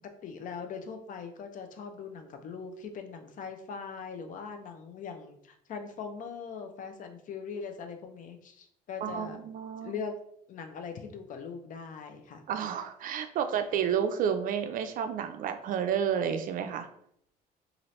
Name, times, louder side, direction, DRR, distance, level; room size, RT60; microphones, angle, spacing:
voice 1, 0.2-9.4 9.8-10.2 10.5-12.4, left 5 dB, 50° left, 6 dB, 0.5 m, -41 dB
voice 2, 9.0-9.9 12.5-16.9, right 8 dB, 55° right, 8 dB, 0.4 m, -30 dB
2.7 x 2.5 x 3.1 m, 0.70 s
cardioid pair, 110°, 17 cm